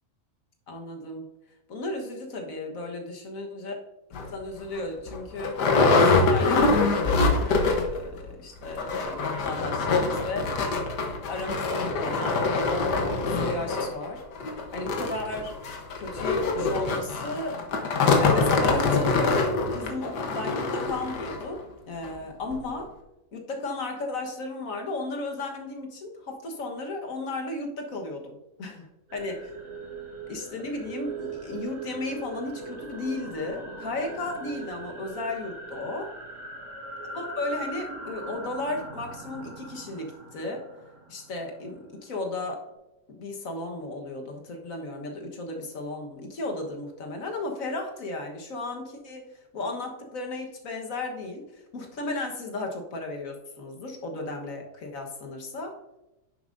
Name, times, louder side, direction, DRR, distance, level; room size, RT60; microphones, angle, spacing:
voice 1, 0.7-1.2 1.7-3.7 4.1-5.6 5.9-7.1 7.5-10.5 11.3-14.2 14.7-15.5 16.0-17.6 18.2-19.4 19.7-21.6 21.9-22.9 23.3-29.5 30.3-36.1 37.1-40.6 41.1-42.6 43.1-49.3 49.5-55.8, left 2 dB, 55° left, 2 dB, 1.7 m, -34 dB
sound 1, 4.1-4.3 4.8-4.9 5.1-8.0 8.3-8.4 8.7-21.5 22.0-22.1 22.5-22.6, left 3 dB, 85° left, 1.7 m, -24 dB
sound 2, 29.1-41.8, right 3 dB, 65° right, 2.6 m, -40 dB
10.0 x 7.0 x 2.6 m, 0.96 s
omnidirectional pair, 1.7 m